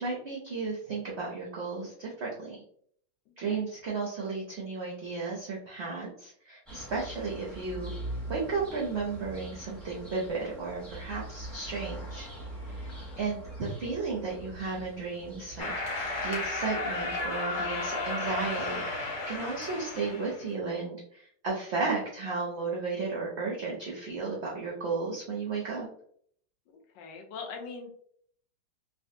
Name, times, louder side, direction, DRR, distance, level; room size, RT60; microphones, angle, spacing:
voice 1, 0.0-2.6 3.4-7.9 8.3-12.3 12.7-25.9, right 4 dB, 65° right, -3 dB, 0.7 m, -34 dB
sound 1, 6.7-18.9, right 1 dB, ahead, 0.6 m, -43 dB
voice 2, 12.9-13.2 26.7-27.9, left 4 dB, 85° left, 4 dB, 1.3 m, -43 dB
sound 2, 15.6-20.4, left 2 dB, 65° left, 1.4 m, -33 dB
3.3 x 2.5 x 2.6 m, 0.62 s
omnidirectional pair, 1.9 m